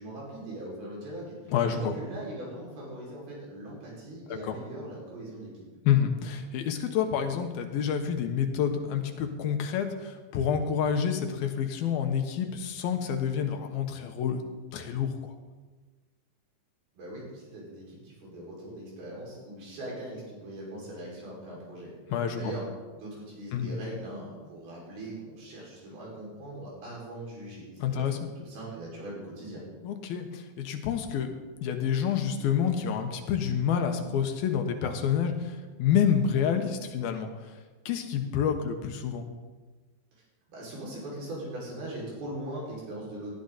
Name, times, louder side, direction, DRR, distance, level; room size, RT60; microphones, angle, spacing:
voice 1, 0.0-5.7 17.0-21.9 22.4-22.6 22.9-27.6 27.9-28.1 28.4-29.6 40.5-43.3, right 1 dB, 85° right, -5 dB, 7.6 m, -40 dB
voice 2, 1.5-1.9 4.3-4.6 5.8-14.4 14.7-15.3 22.1-22.5 23.5-23.7 27.8-28.3 29.8-31.3 31.6-37.6 37.9-39.3, left 8 dB, 80° left, 6 dB, 3.1 m, -28 dB
18.5 x 13.0 x 4.2 m, 1.3 s
omnidirectional pair, 4.3 m